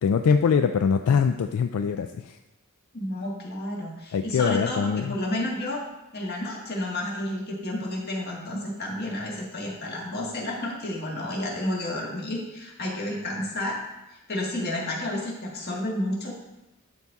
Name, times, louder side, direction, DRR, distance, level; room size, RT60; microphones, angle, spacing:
voice 1, 0.0-2.4 4.1-5.1, left 6 dB, 75° left, 7 dB, 0.3 m, -23 dB
voice 2, 2.9-5.8 6.1-13.8 14.3-16.3, left 1 dB, 45° left, -2 dB, 1.7 m, -31 dB
12.0 x 4.1 x 3.5 m, 0.98 s
head